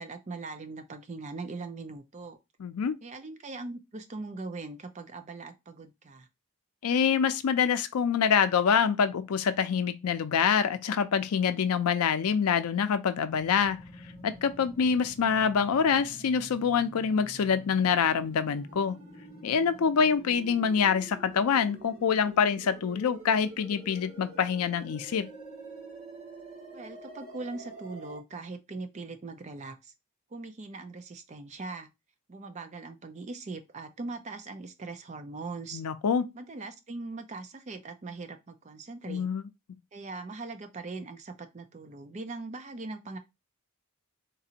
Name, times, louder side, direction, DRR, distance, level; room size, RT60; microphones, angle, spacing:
voice 1, 0.0-2.4 3.0-6.3 26.7-29.9 30.3-31.9 32.3-35.8 36.3-39.3 39.9-43.2, right 3 dB, 30° right, 0.4 m, -40 dB
voice 2, 2.6-2.9 6.8-13.8 14.2-19.0 19.4-25.3 35.7-36.3 39.1-39.5, left 6 dB, 85° left, 0.4 m, -26 dB
sound 1, 13.3-28.2, right 2 dB, 70° right, 2.0 m, -47 dB
3.9 x 2.5 x 2.8 m
head